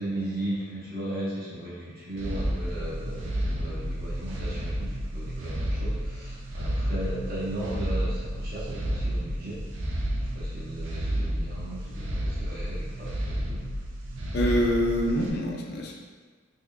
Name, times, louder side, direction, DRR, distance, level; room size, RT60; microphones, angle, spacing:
voice 1, 0.0-9.7 10.3-13.7, right 1 dB, 50° right, -8 dB, 1.1 m, -36 dB
sound 1, 2.2-15.3, equal, 70° right, 0.5 m, -31 dB
voice 2, 14.3-15.9, equal, 55° left, 0 dB, 0.5 m, -25 dB
3.6 x 3.5 x 2.2 m, 1.5 s
head